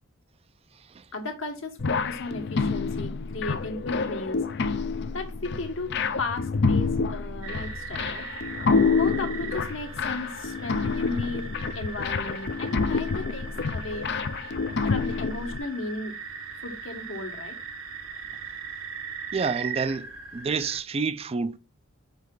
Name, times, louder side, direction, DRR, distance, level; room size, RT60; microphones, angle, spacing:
voice 1, 1.1-4.4 5.1-8.3 8.9-11.5 11.7-14.1 14.9-16.2 16.6-17.6, left 2 dB, 70° left, 1.6 m, -35 dB
sound 1, 1.8-15.6, left 4 dB, 55° left, 0.5 m, -28 dB
sound 2, 7.4-20.8, right 5 dB, 85° right, 1.5 m, -39 dB
voice 2, 19.3-20.1 20.3-21.6, right 4 dB, 30° right, 0.4 m, -28 dB
5.6 x 5.2 x 3.9 m
head